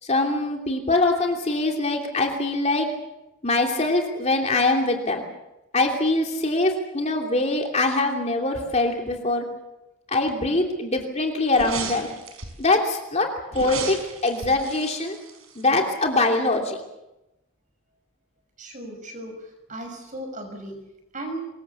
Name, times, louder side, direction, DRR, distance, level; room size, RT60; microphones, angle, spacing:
voice 1, 0.0-2.9 3.4-5.2 5.7-9.4 10.1-12.1 12.6-14.0 14.2-15.2 15.5-16.8, left 2 dB, 30° left, 2 dB, 2.9 m, -23 dB
sound 1, 11.5-12.7 13.5-16.0 16.3-16.4, right 4 dB, 85° right, 5.1 m, -35 dB
voice 2, 18.6-19.4 19.7-20.7 21.1-21.4, right 1 dB, 35° right, 4 dB, 6.1 m, -35 dB
24.5 x 22.0 x 7.0 m, 0.94 s
head